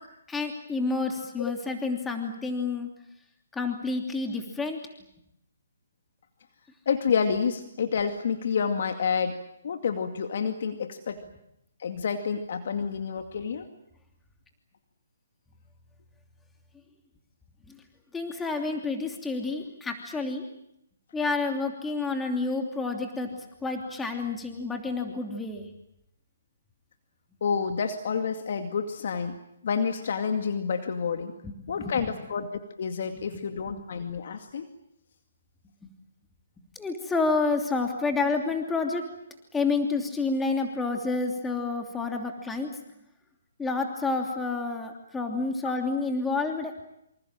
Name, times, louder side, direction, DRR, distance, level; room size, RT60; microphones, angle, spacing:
voice 1, 0.3-2.9 3.5-4.8 17.7-17.8 18.1-20.4 21.1-23.3 23.6-25.7 31.4-31.5 31.8-32.1 36.7-39.1 39.5-42.7 43.6-46.7, left 3 dB, 10° left, 3 dB, 2.9 m, -29 dB
voice 2, 6.9-11.2 11.8-13.7 27.4-29.4 29.6-31.3 31.7-34.7 41.6-41.7 45.6-45.7, left 6 dB, 55° left, 6 dB, 2.2 m, -29 dB
27.5 x 26.0 x 7.5 m, 0.80 s
hypercardioid pair, 140°, 0 cm